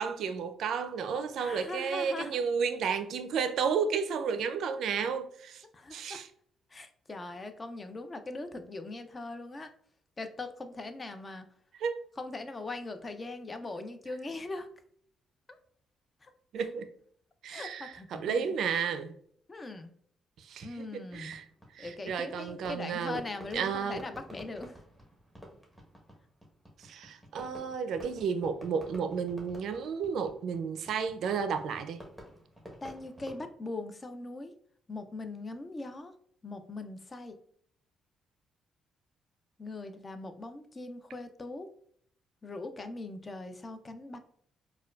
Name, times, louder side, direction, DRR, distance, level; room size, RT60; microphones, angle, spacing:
voice 1, 0.0-5.6 5.9-6.3 11.8-12.1 16.5-16.9 17.4-19.1 20.4-21.4 21.7-23.2 23.5-24.0 26.8-32.0, right 6 dB, 70° right, 0.4 m, -32 dB
voice 2, 1.4-2.4 5.7-6.2 6.7-9.7 10.2-11.5 12.2-14.7 15.5-15.6 16.2-16.3 17.5-18.5 19.5-19.9 20.6-21.3 21.8-24.8 32.8-34.5 34.9-36.1 36.4-37.4 39.6-41.7 42.4-44.2, left 2 dB, 30° left, 0.4 m, -40 dB
Fireworks, 21.1-33.4, equal, 5° left, 1.0 m, -51 dB
4.3 x 2.2 x 2.3 m
cardioid pair, 90°, 0 cm